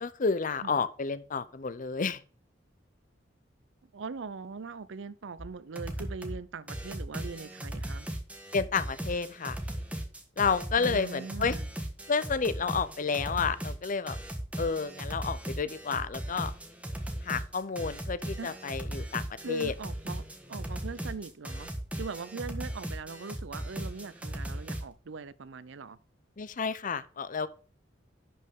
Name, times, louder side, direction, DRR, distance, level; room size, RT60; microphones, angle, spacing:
voice 1, 0.0-2.2 8.5-9.6 10.4-11.6 12.1-14.2 14.6-16.5 17.2-19.7 26.4-27.5, left 5 dB, 45° left, 0.6 m, -30 dB
voice 2, 3.9-8.1 10.8-11.7 18.4-18.6 18.9-19.1 19.4-20.2 20.5-21.7 22.0-26.0, right 4 dB, 75° right, 0.5 m, -41 dB
sound 1, 5.4-5.5 5.8-6.4 6.7-24.8, right 1 dB, 5° right, 1.5 m, -37 dB
11.0 x 5.3 x 3.6 m
head